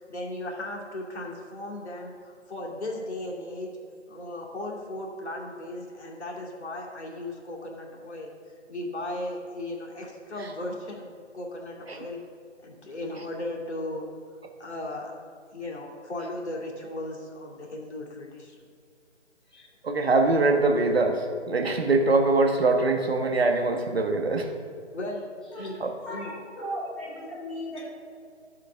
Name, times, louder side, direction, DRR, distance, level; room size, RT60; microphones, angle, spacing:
voice 1, 0.1-3.8 4.1-8.3 8.7-11.1 11.3-12.3 12.6-14.1 14.6-15.1 15.5-18.6 19.5-19.7 24.9-26.3 27.8-27.9, left 1 dB, 65° left, -1 dB, 2.6 m, -36 dB
voice 2, 19.8-24.5 25.8-25.9, right 3 dB, 55° right, 4 dB, 1.3 m, -23 dB
voice 3, 26.0-27.9, equal, ahead, -12 dB, 1.8 m, -36 dB
13.0 x 7.7 x 3.6 m, 2.3 s
figure-of-eight pair, 155°, 36 cm